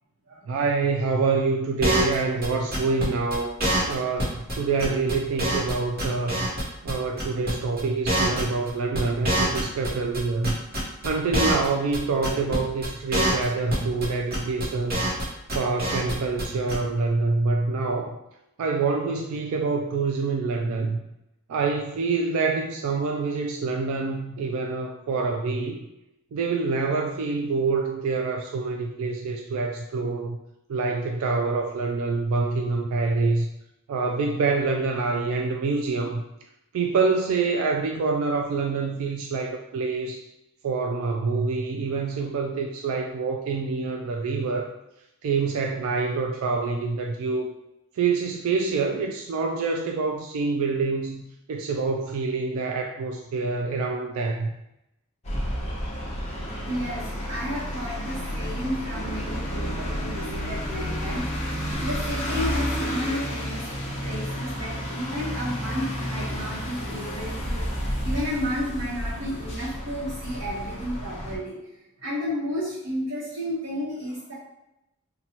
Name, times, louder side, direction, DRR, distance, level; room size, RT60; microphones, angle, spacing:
voice 1, 0.5-3.5 3.9-6.5 6.8-10.5 11.0-15.1 15.5-18.2 18.6-21.0 21.5-25.9 26.3-30.4 30.7-33.5 33.9-36.2 36.7-40.3 40.6-44.7 45.2-47.5 47.9-51.2 51.5-54.5, right 4 dB, 80° right, 2 dB, 0.3 m, -26 dB
sound 1, 1.8-2.2 2.4-2.5 2.7-3.0 3.3-3.4 3.6-3.9 4.2-4.3 4.5-4.6 4.8-5.7 6.0-6.9 7.2-7.5 7.8-9.9 10.1-11.7 11.9-12.0 12.2-12.6 12.8-12.9 13.1-13.4 13.7-14.0 14.3-15.2 15.5-16.1 16.4-16.5 16.7-16.8, right 1 dB, 45° right, 0.9 m, -25 dB
sound 2, 55.2-71.4, equal, 30° left, 0.8 m, -31 dB
voice 2, 56.7-61.3 61.8-63.7 64.0-71.6 72.0-74.3, equal, 65° right, -11 dB, 1.0 m, -32 dB
4.2 x 2.2 x 2.8 m, 0.90 s
head